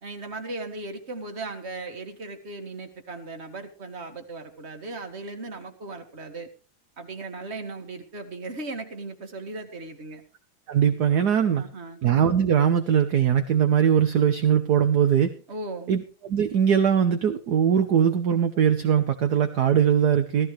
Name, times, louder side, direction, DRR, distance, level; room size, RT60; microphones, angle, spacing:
voice 1, 0.0-6.5 7.0-10.2 11.5-12.0 15.5-15.9, right 2 dB, 30° right, 6 dB, 2.1 m, -37 dB
voice 2, 10.7-11.6 12.0-15.3 15.9-20.5, right 8 dB, 55° right, 7 dB, 1.5 m, -21 dB
16.5 x 15.0 x 3.2 m, 0.36 s
omnidirectional pair, 2.3 m